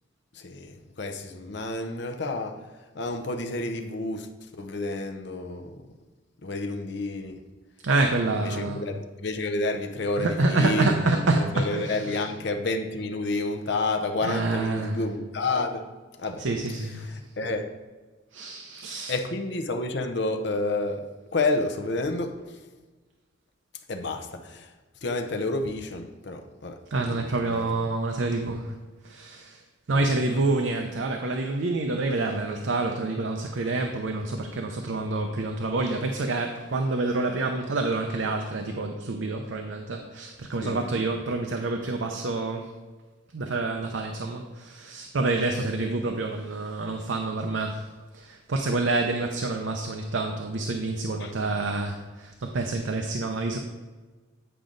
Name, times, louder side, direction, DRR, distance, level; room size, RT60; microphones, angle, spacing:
voice 1, 0.3-2.7 2.9-4.3 4.6-5.8 6.4-7.4 8.3-11.2 11.5-15.9 16.2-16.5 17.0-17.7 19.1-22.5 23.9-24.7 25.0-27.7 29.9-30.1 40.6-41.2 51.2-51.3, left 2 dB, 60° left, 0.6 m, -30 dB
voice 2, 7.8-8.8 10.2-12.2 14.2-15.0 16.4-17.1 18.3-19.2 26.9-28.7 29.0-29.6 29.9-42.7 43.3-47.9 48.1-53.6, right 2 dB, 70° right, 0.6 m, -27 dB
8.9 x 5.0 x 3.8 m
head